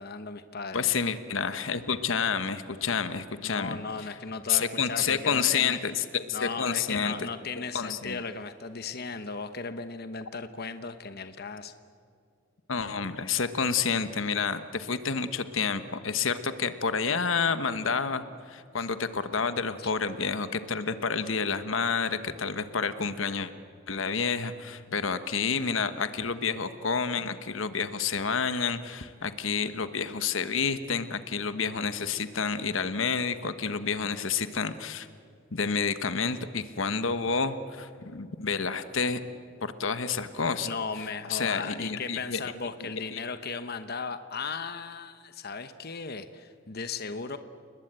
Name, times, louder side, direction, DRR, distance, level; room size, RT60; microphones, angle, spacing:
voice 1, 0.0-0.9 3.4-5.8 6.3-11.7 19.8-19.9 40.6-47.4, left 4 dB, 50° left, 10 dB, 1.0 m, -36 dB
voice 2, 0.7-3.8 4.5-7.3 7.7-8.2 12.7-23.5 23.9-35.1 35.5-39.2 39.6-40.7 41.3-42.4 42.8-43.2, left 5 dB, 75° left, 11 dB, 1.2 m, -29 dB
30.0 x 20.5 x 8.9 m, 2.3 s
head